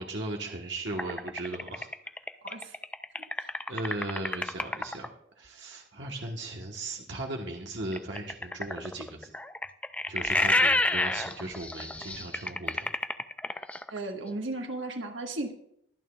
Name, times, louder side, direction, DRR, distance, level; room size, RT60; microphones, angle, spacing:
voice 1, 0.0-1.9 3.7-9.3 10.1-12.9, right 2 dB, 70° right, 0 dB, 1.2 m, -37 dB
sound 1, 1.0-5.1 7.9-14.0, left 2 dB, 5° left, 0.3 m, -29 dB
voice 2, 2.4-2.7 13.9-15.5, right 2 dB, 90° right, 3 dB, 1.5 m, -35 dB
22.5 x 8.8 x 2.4 m, 0.72 s
head